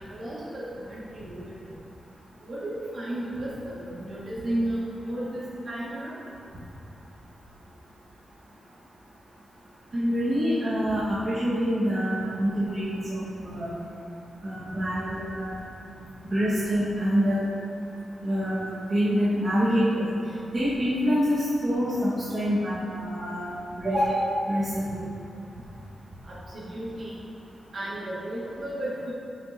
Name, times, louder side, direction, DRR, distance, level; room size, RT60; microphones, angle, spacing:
voice 1, 0.1-1.4 2.4-6.2 26.2-27.1 27.7-29.1, right 1 dB, 45° right, -7 dB, 2.3 m, -33 dB
voice 2, 9.9-13.7 14.4-15.6 16.2-17.4 18.2-20.1 20.5-25.0, equal, 30° right, -11 dB, 1.9 m, -26 dB
11.5 x 8.3 x 3.0 m, 2.7 s
wide cardioid pair, 170°, 0 cm